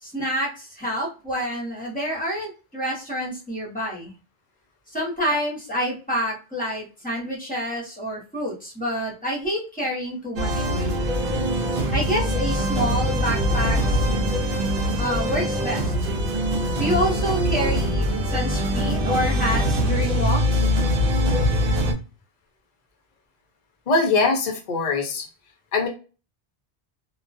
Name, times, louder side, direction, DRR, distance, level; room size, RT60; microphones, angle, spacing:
voice 1, 0.0-4.1 4.9-10.9 11.9-14.1 15.0-15.9 16.8-20.7, equal, 10° left, -3 dB, 0.9 m, -28 dB
sound 1, 10.4-21.9, equal, 60° right, 0.8 m, -23 dB
voice 2, 23.9-25.3 25.7-25.9, left 3 dB, 50° left, 2 dB, 0.6 m, -22 dB
2.4 x 2.2 x 2.3 m, 0.34 s
omnidirectional pair, 1.1 m